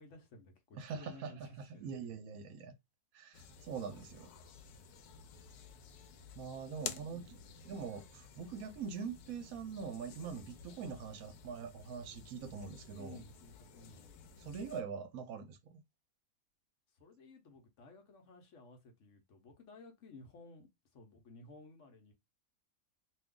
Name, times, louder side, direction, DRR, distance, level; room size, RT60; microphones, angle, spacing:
voice 1, 0.0-1.9 6.8-7.6 13.0-14.1 16.9-22.1, left 2 dB, 60° left, 1.0 m, -56 dB
voice 2, 0.7-2.7 3.1-4.3 6.4-13.2 14.4-15.8, right 6 dB, 75° right, 1.0 m, -43 dB
sound 1, 3.3-14.8, left 7 dB, 80° left, 1.1 m, -52 dB
2.6 x 2.3 x 3.6 m
omnidirectional pair, 1.6 m